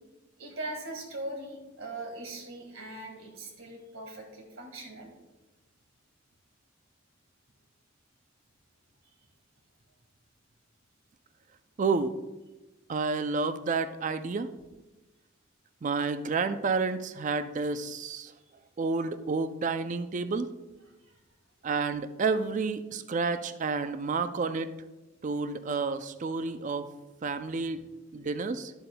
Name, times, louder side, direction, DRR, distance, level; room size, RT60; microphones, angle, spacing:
voice 1, 0.4-5.1 9.1-9.2 21.0-21.2, right 2 dB, 80° right, 2 dB, 1.8 m, -40 dB
voice 2, 11.8-12.2 12.9-14.5 15.8-18.3 18.8-20.5 21.6-24.7 25.2-26.9 27.2-27.8 28.1-28.7, right 4 dB, 40° right, 11 dB, 0.4 m, -30 dB
12.0 x 7.9 x 2.2 m, 1.1 s
head